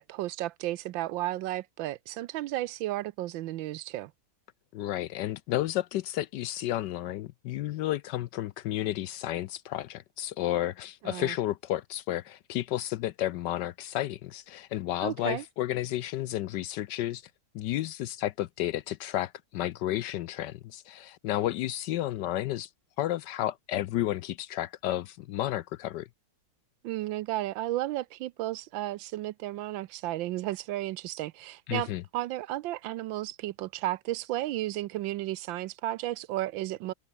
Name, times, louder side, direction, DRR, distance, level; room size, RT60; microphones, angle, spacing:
voice 1, 0.0-4.1 11.0-11.3 15.0-15.4 26.8-36.9, right 15 dB, 80° right, 1.3 m, -33 dB
voice 2, 4.7-17.2 17.5-22.7 23.0-26.1 31.7-32.0, left 14 dB, 70° left, 1.1 m, -32 dB
omnidirectional pair, 2.2 m